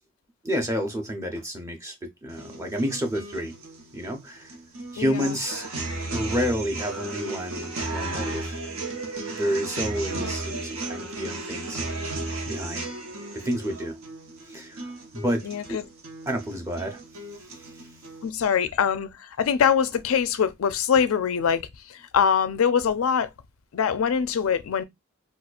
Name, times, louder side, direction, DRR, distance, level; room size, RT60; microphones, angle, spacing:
voice 1, 0.4-3.5 3.9-4.5 4.9-5.6 6.1-8.6 9.3-12.1 12.5-12.9 13.3-14.0 14.5-15.8 16.3-17.0 17.5-17.7, equal, 15° right, 0.7 m, -30 dB
sound 1, 2.3-18.3, right 2 dB, 75° right, 1.0 m, -35 dB
voice 2, 5.0-5.3 10.2-10.4 15.4-15.8 18.2-23.3 23.7-24.8, left 7 dB, 75° left, 0.4 m, -24 dB
4.2 x 2.3 x 2.3 m
head